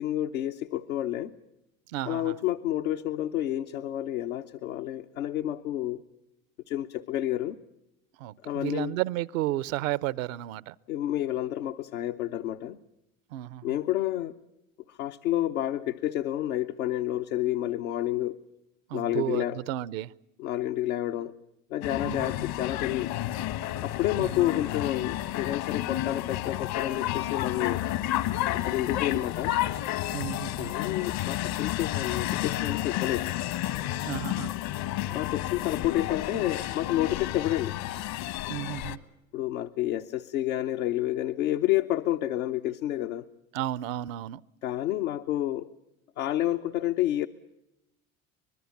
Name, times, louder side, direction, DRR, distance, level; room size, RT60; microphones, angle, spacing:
voice 1, 0.0-1.3 2.0-6.0 6.7-7.6 8.4-8.9 10.9-12.8 13.6-14.4 14.9-18.4 18.9-19.6 20.4-21.3 21.7-23.1 23.8-27.8 28.5-29.6 30.6-33.3 35.1-37.8 39.3-43.3 44.6-45.7 46.2-47.3, left 13 dB, 80° left, 0.9 m, -29 dB
voice 2, 1.9-2.4 8.2-10.8 13.3-13.8 18.9-20.1 22.0-22.3 24.2-24.5 30.1-30.7 34.0-34.5 38.5-39.0 43.5-44.4, right 15 dB, 70° right, 0.8 m, -33 dB
sound 1, 21.8-39.0, left 14 dB, 60° left, 1.3 m, -31 dB
24.5 x 21.0 x 7.2 m
hypercardioid pair, 75°, 41 cm